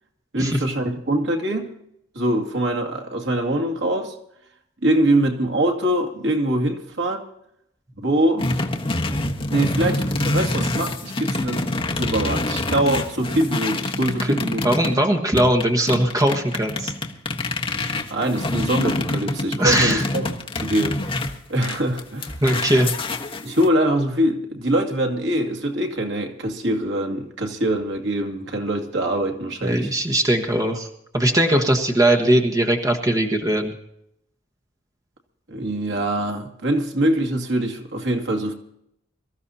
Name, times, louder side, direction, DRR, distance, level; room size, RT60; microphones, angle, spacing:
voice 1, 0.3-1.7 2.2-4.1 4.8-7.2 8.0-8.6 9.5-11.7 11.9-14.6 18.1-22.8 23.4-29.9 35.5-38.5, right 1 dB, 65° right, 2.2 m, -23 dB
sound 1, 8.4-15.0 15.4-23.7, left 2 dB, 30° left, 1.3 m, -26 dB
voice 2, 14.2-16.9 19.6-20.0 22.4-22.9 29.6-30.9 31.1-33.7, right 1 dB, 20° right, 1.4 m, -20 dB
24.0 x 14.0 x 2.8 m
head